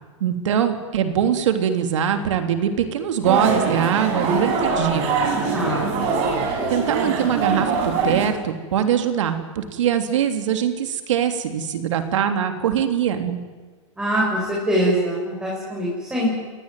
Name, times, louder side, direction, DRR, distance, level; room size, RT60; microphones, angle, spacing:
voice 1, 0.2-5.1 6.7-13.4, right 9 dB, 70° right, 6 dB, 3.4 m, -22 dB
sound 1, 3.2-8.3, right 4 dB, 40° right, 7.8 m, -23 dB
voice 2, 5.5-5.9 14.0-16.4, equal, 5° right, -4 dB, 7.5 m, -23 dB
27.0 x 19.0 x 9.3 m, 1.4 s
hypercardioid pair, 130°, 16 cm